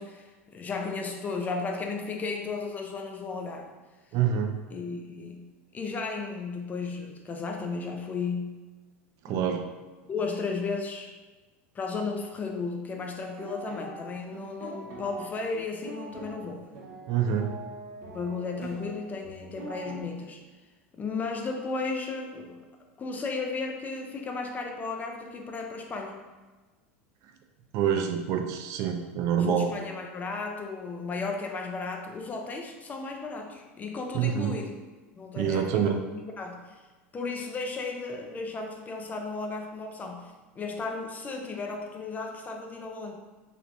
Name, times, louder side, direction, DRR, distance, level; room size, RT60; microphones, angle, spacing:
voice 1, 0.0-3.7 4.7-5.5 5.7-8.6 9.3-9.7 10.1-11.1 11.7-16.6 18.1-20.4 20.9-22.6 23.0-26.2 29.4-34.8 35.1-36.7 37.1-43.2, left 4 dB, 25° left, 2 dB, 0.5 m, -34 dB
voice 2, 4.1-4.6 9.2-9.6 17.1-17.5 27.7-29.7 34.1-34.5 35.4-36.0, right 8 dB, 50° right, 6 dB, 0.4 m, -26 dB
sound 1, 13.1-20.0, right 2 dB, 75° right, 0.8 m, -43 dB
3.3 x 2.8 x 2.5 m, 1.3 s
hypercardioid pair, 100°, 7 cm